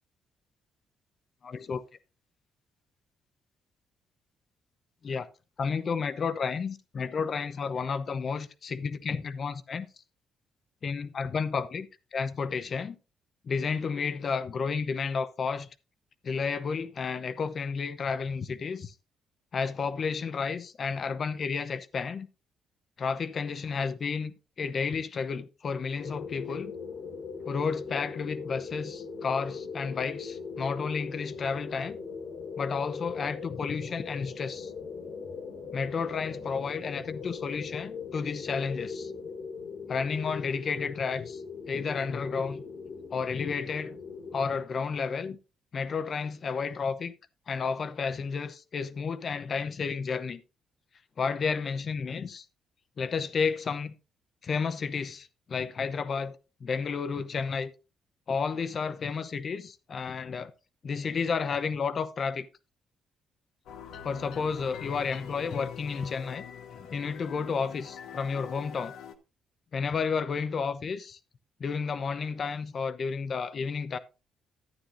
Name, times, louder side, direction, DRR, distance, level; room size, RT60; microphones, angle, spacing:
voice 1, 1.4-1.8 5.0-5.3 5.6-9.9 10.8-13.0 13.4-15.7 16.2-18.9 19.5-22.3 23.0-26.7 27.5-32.0 32.6-34.7 35.7-39.1 39.9-41.4 41.7-42.6 43.1-44.0 44.3-45.4 45.7-47.1 47.5-50.4 51.2-52.4 53.0-53.9 54.4-56.3 56.6-57.7 58.3-60.5 60.8-62.5 64.0-66.4 66.9-68.9 69.7-71.2 71.6-74.0, left 5 dB, 50° left, 0.8 m, -31 dB
sound 1, 26.0-44.5, left 5 dB, 65° left, 2.1 m, -40 dB
sound 2, 63.7-69.1, left 8 dB, 85° left, 1.0 m, -44 dB
12.0 x 9.5 x 2.6 m
cardioid pair, 90°, 0 cm